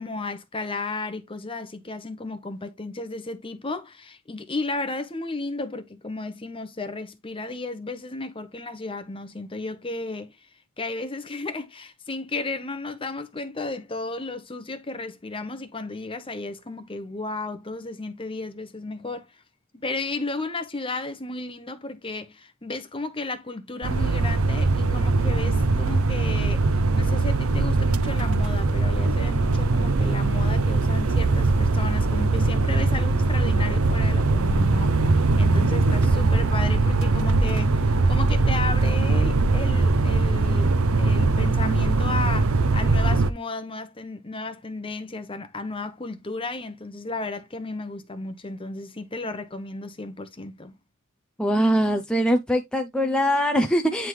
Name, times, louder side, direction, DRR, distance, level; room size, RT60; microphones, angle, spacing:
voice 1, 0.0-10.4 10.8-19.4 19.7-50.7, left 3 dB, 25° left, 1.0 m, -34 dB
sound 1, 23.8-43.3, right 3 dB, 80° right, 0.7 m, -21 dB
voice 2, 51.4-54.1, equal, 5° left, 0.6 m, -22 dB
9.4 x 3.6 x 3.1 m
head